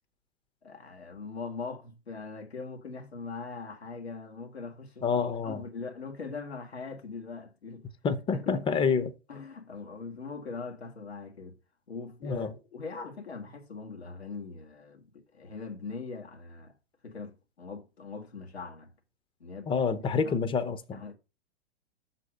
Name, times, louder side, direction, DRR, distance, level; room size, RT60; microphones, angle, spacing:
voice 1, 0.6-5.1 5.4-7.9 8.3-8.8 9.3-11.6 11.9-16.7 17.0-18.9 19.4-20.4 20.9-21.2, left 4 dB, 85° left, 1.8 m, -41 dB
voice 2, 5.0-5.6 8.0-9.1 12.2-12.5 19.7-21.0, left 5 dB, 15° left, 0.7 m, -28 dB
6.3 x 4.3 x 6.3 m
figure-of-eight pair, 105°, 31 cm